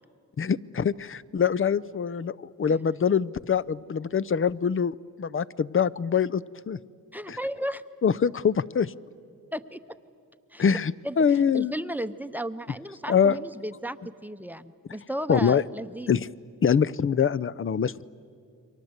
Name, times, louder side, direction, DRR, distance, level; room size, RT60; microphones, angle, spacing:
voice 1, 0.4-6.8 7.3-7.4 8.0-8.9 10.6-11.7 13.1-13.4 15.3-15.6 16.1-16.3 16.6-18.0, left 7 dB, 40° left, 16 dB, 0.6 m, -24 dB
voice 2, 7.1-7.8 9.5-9.8 10.5-10.8 11.0-16.1, equal, 5° right, 10 dB, 0.8 m, -34 dB
29.5 x 23.5 x 8.0 m, 2.4 s
cardioid pair, 75°, 33 cm